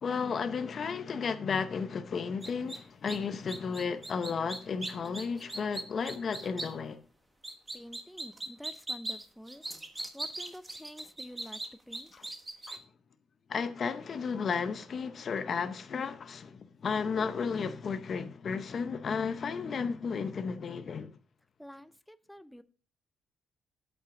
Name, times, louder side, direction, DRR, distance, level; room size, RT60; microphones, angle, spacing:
voice 1, 0.0-7.0 12.7-12.8 13.5-21.2, left 5 dB, 45° left, 0.7 m, -33 dB
sound 1, 2.4-2.8 3.1-3.2 3.5-6.7 7.4-12.8, right 2 dB, 15° right, 1.2 m, -39 dB
voice 2, 7.7-9.6 10.1-12.1 21.6-22.6, equal, ahead, 0.5 m, -48 dB
8.5 x 8.0 x 3.7 m
cardioid pair, 130°, 0 cm